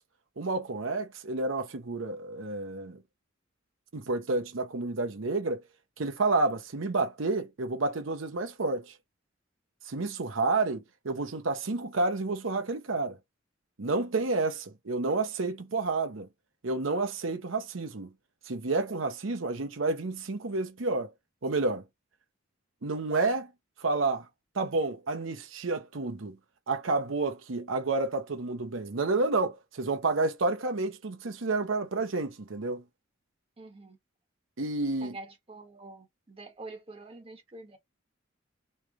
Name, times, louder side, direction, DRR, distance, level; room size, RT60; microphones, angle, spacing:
voice 1, 0.4-3.0 3.9-5.6 6.0-8.9 9.8-13.2 13.8-16.3 16.6-18.1 18.4-21.1 21.4-21.8 22.8-23.5 23.8-24.3 24.5-26.4 26.7-32.8 34.6-35.2, right 3 dB, 80° right, 0.8 m, -30 dB
voice 2, 33.6-34.0 35.0-37.8, right 2 dB, 30° right, 1.2 m, -46 dB
3.2 x 3.2 x 3.6 m
head